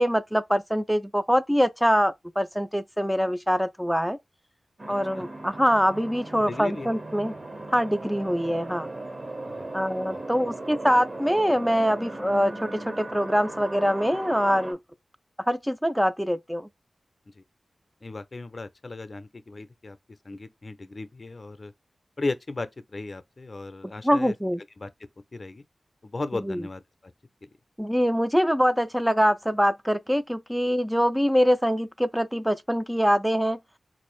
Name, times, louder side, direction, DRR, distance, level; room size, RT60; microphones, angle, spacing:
voice 1, 0.0-4.2 4.9-7.3 7.7-8.9 9.7-14.8 15.5-16.7 24.0-24.6 26.5-26.6 27.8-33.6, equal, ahead, 0.4 m, -24 dB
sound 1, 4.8-14.7, right 2 dB, 55° right, 1.6 m, -38 dB
voice 2, 6.4-6.9 9.5-10.5 17.3-17.4 18.0-20.0 20.2-21.7 22.2-24.3 24.8-24.9 25.3-25.6 26.0-27.1 27.4-27.5, left 3 dB, 50° left, 0.5 m, -36 dB
3.8 x 2.6 x 3.1 m
cardioid pair, 45°, 0 cm